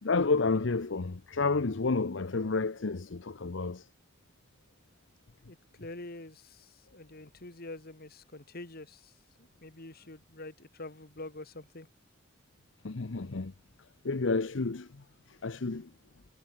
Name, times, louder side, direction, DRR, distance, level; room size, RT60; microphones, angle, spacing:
voice 1, 0.0-3.9 12.8-13.5 14.0-15.9, left 3 dB, 70° left, 0.8 m, -30 dB
voice 2, 5.4-9.1 9.4-11.9, left 2 dB, 50° left, 2.7 m, -46 dB
head